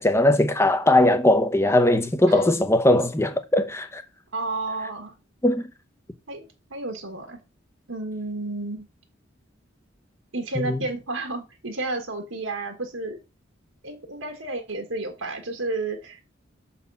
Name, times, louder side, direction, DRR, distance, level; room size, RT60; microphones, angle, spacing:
voice 1, 0.0-4.0 5.4-5.7 10.6-10.9, left 1 dB, 15° left, 0.7 m, -20 dB
voice 2, 4.3-5.1 6.3-7.4 7.9-8.8 10.3-13.2 13.8-16.2, right 2 dB, 85° right, 1.6 m, -31 dB
6.8 x 4.1 x 5.5 m
head